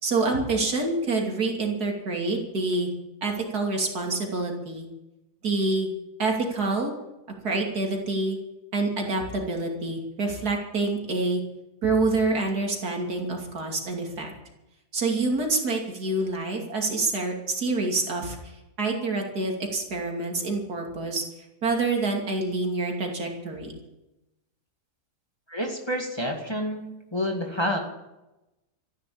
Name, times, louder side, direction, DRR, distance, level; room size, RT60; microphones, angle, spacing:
voice 1, 0.0-2.9 3.2-4.9 5.4-5.9 6.2-6.9 7.4-8.4 8.7-11.4 11.8-14.3 14.9-18.5 18.8-21.2 21.6-23.7, right 3 dB, 75° right, 1 dB, 3.3 m, -27 dB
voice 2, 25.5-27.8, equal, 15° left, 1 dB, 2.2 m, -29 dB
13.5 x 11.5 x 8.7 m, 0.97 s
omnidirectional pair, 1.7 m